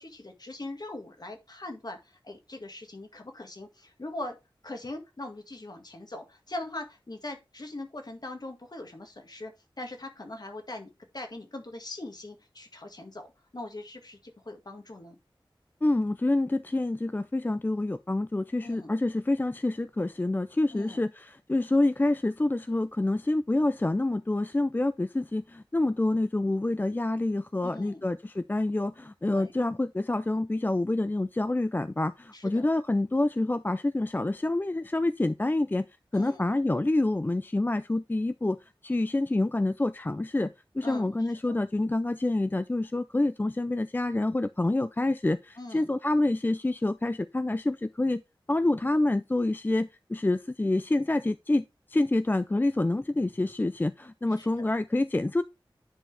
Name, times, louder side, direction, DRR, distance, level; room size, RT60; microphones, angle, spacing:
voice 1, 0.0-4.4 4.6-9.5 9.8-13.3 13.5-15.2 18.6-18.9 20.7-21.0 27.6-28.0 29.3-29.5 32.3-32.7 36.1-36.4 40.8-41.2 45.6-45.9 54.4-54.7, left 2 dB, 50° left, 1.8 m, -41 dB
voice 2, 15.8-35.9 36.1-38.6 38.8-48.2 48.5-51.6 51.9-55.4, left 2 dB, 20° left, 0.4 m, -27 dB
10.0 x 4.5 x 3.4 m
wide cardioid pair, 55°, 9 cm